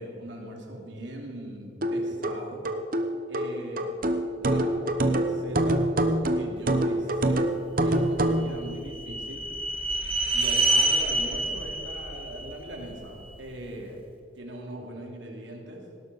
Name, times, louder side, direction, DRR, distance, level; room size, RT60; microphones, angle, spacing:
voice 1, 0.0-2.6 3.3-3.9 4.4-5.8 6.3-7.4 7.8-9.4 10.3-14.0 14.3-15.8, right 1 dB, 90° right, 0 dB, 2.7 m, -40 dB
sound 1, 1.8-8.5, right 1 dB, 50° right, 0.9 m, -25 dB
sound 2, 8.2-13.4, right 2 dB, 30° right, 1.6 m, -28 dB
18.5 x 12.0 x 4.1 m, 2.4 s
head